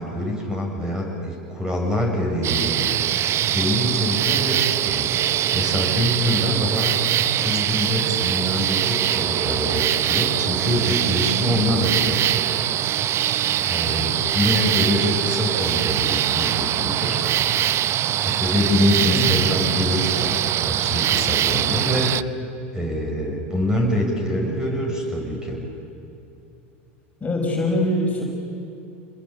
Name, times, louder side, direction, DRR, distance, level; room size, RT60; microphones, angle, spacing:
voice 1, 0.0-2.9 3.5-5.1 5.5-7.0 7.4-12.2 13.6-17.3 18.2-22.2 22.7-25.6, left 1 dB, 10° right, 0 dB, 6.8 m, -25 dB
sound 1, 2.4-22.2, right 12 dB, 40° right, 0.6 m, -22 dB
voice 2, 19.0-19.3 27.2-28.2, left 1 dB, 20° left, -1 dB, 5.6 m, -23 dB
27.5 x 21.0 x 8.4 m, 2.7 s
hypercardioid pair, 90°, 7 cm